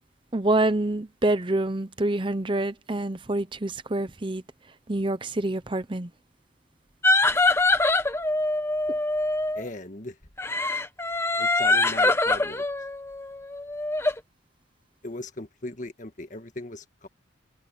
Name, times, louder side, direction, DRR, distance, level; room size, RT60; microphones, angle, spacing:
voice 1, 0.3-4.4 4.9-6.1, right 2 dB, 25° right, 0.7 m, -26 dB
sound 1, 7.0-9.7 10.4-14.2, left 2 dB, 15° left, 0.9 m, -24 dB
voice 2, 9.5-10.2 11.4-12.7 15.0-17.1, left 2 dB, 40° left, 1.6 m, -37 dB
head